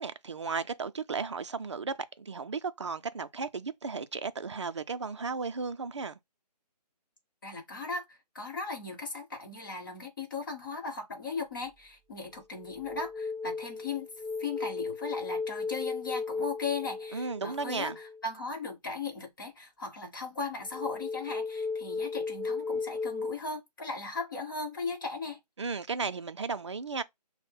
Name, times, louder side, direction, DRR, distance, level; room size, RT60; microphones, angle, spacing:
voice 1, 0.0-6.1 17.1-18.0 25.6-27.0, right 4 dB, 45° right, 0.4 m, -35 dB
voice 2, 7.4-14.1 14.4-25.4, left 4 dB, 30° left, 1.1 m, -37 dB
sound 1, 11.6-11.8 12.3-18.2 20.7-23.3, left 4 dB, 5° left, 1.9 m, -36 dB
5.6 x 2.1 x 3.5 m
hypercardioid pair, 170°, 21 cm